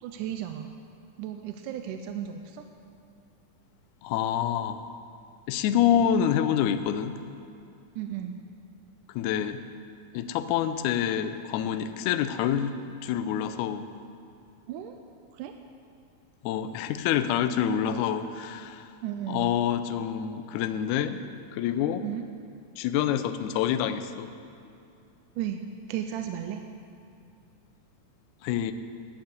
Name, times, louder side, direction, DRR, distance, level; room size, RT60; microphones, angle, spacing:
voice 1, 0.0-0.7 1.2-2.6 8.0-8.4 14.7-15.0 15.3-15.5 19.0-19.5 22.0-22.3 25.4-25.6 25.9-26.6, right 10 dB, 80° right, 6 dB, 1.9 m, -34 dB
voice 2, 4.0-4.9 5.5-7.2 9.2-9.6 10.1-12.8 13.0-13.9 16.4-18.9 19.3-21.2 21.5-22.0 22.8-24.3 28.4-28.7, left 9 dB, 80° left, 10 dB, 1.7 m, -27 dB
10.5 x 10.5 x 6.8 m, 2.5 s
omnidirectional pair, 4.0 m